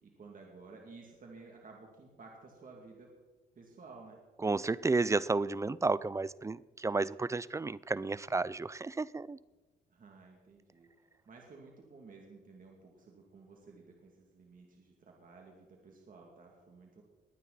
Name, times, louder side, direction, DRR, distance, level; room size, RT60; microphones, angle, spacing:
voice 1, 0.0-3.1 3.6-4.2 9.9-10.9 11.3-17.0, right 4 dB, 45° right, 0 dB, 2.6 m, -54 dB
voice 2, 4.4-9.4, right 3 dB, 15° right, 20 dB, 0.3 m, -32 dB
21.0 x 9.5 x 4.2 m, 1.2 s
cardioid pair, 90°, 20 cm